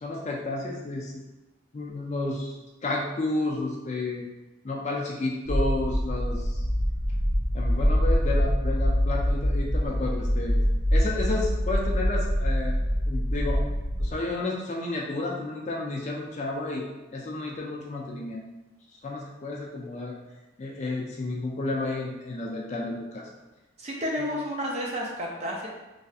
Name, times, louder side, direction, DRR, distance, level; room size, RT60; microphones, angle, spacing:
voice 1, 0.0-1.1 1.7-2.6 2.8-4.2 4.6-6.6 7.5-10.6 10.9-12.8 13.1-13.6 14.0-16.9 17.1-18.4 19.0-20.2 20.6-23.3 24.2-24.3, left 2 dB, 35° left, -1 dB, 0.4 m, -31 dB
sound 1, 5.5-14.2, equal, 70° right, 0.7 m, -25 dB
voice 2, 23.8-25.7, equal, 30° right, -2 dB, 0.4 m, -31 dB
3.2 x 2.6 x 2.3 m, 1.1 s
head